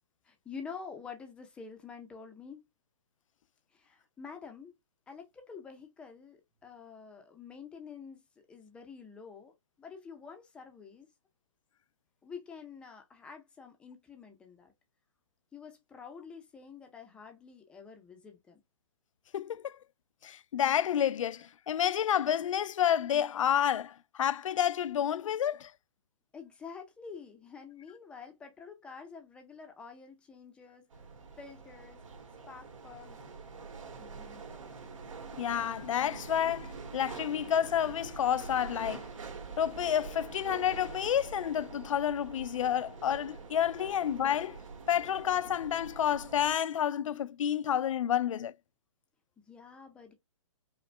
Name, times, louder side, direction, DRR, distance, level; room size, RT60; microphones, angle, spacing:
voice 1, 0.2-2.6 3.7-4.7 5.1-11.1 12.2-14.7 15.5-18.6 26.3-30.9 31.4-32.0 32.5-33.2 34.0-34.6 49.4-50.1, left 5 dB, 5° left, 0.5 m, -48 dB
voice 2, 19.3-19.8 20.2-25.7 35.4-39.1 39.6-44.6 44.9-48.5, left 9 dB, 80° left, 0.4 m, -30 dB
sound 1, 30.9-46.5, right 4 dB, 85° right, 1.5 m, -45 dB
5.1 x 2.1 x 3.2 m
hypercardioid pair, 160°, 16 cm